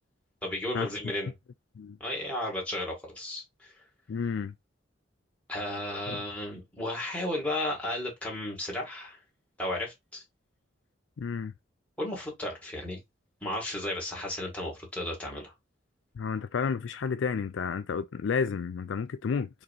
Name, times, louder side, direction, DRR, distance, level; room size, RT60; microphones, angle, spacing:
voice 1, 0.4-1.3 2.0-3.7 5.5-9.2 9.6-10.2 12.0-13.0 13.4-15.5, left 1 dB, 5° left, 2.2 m, -34 dB
voice 2, 4.1-4.5 6.1-6.2 11.2-11.5 16.2-19.5, left 6 dB, 70° left, 0.4 m, -31 dB
4.7 x 3.0 x 2.5 m
head